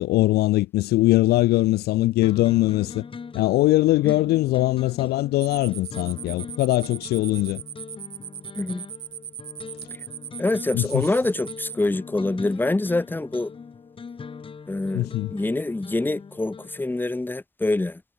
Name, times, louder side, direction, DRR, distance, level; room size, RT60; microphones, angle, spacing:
voice 1, 0.0-3.0 3.3-7.6 10.7-11.1 14.9-15.3, left 17 dB, 70° left, 0.5 m, -21 dB
sound 1, 2.2-17.0, left 5 dB, 30° left, 6.5 m, -41 dB
sound 2, 5.4-11.8, right 9 dB, 50° right, 2.6 m, -38 dB
voice 2, 10.4-13.5 14.7-18.0, left 2 dB, 10° left, 2.7 m, -25 dB
cardioid pair, 110°, 17 cm